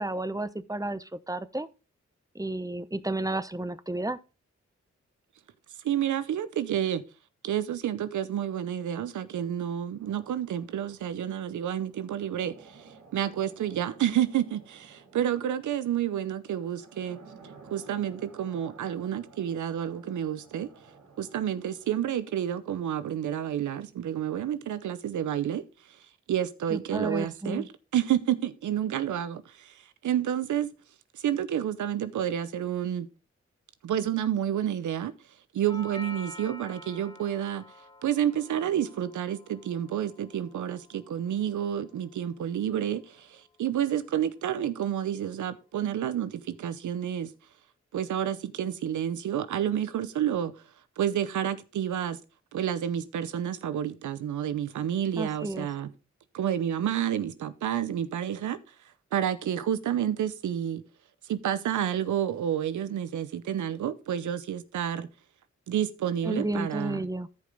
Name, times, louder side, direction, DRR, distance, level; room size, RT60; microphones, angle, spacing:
voice 1, 0.0-1.7 2.3-4.2 26.7-27.7 55.2-55.7 66.2-67.3, right 2 dB, 10° right, 0.8 m, -32 dB
voice 2, 5.8-7.0 7.4-12.8 13.1-17.2 17.7-20.7 21.2-25.6 26.3-27.7 27.9-30.7 31.1-33.1 33.8-35.1 35.5-37.6 38.0-47.3 47.9-50.6 51.0-52.2 52.5-55.9 56.3-58.6 59.1-60.8 61.2-65.1 65.7-67.1, right 10 dB, 90° right, 0.7 m, -29 dB
sound 1, 10.0-23.8, right 4 dB, 65° right, 2.1 m, -55 dB
Doorbell, 35.7-43.7, left 1 dB, 15° left, 2.4 m, -49 dB
14.0 x 5.2 x 3.4 m
cardioid pair, 40°, 29 cm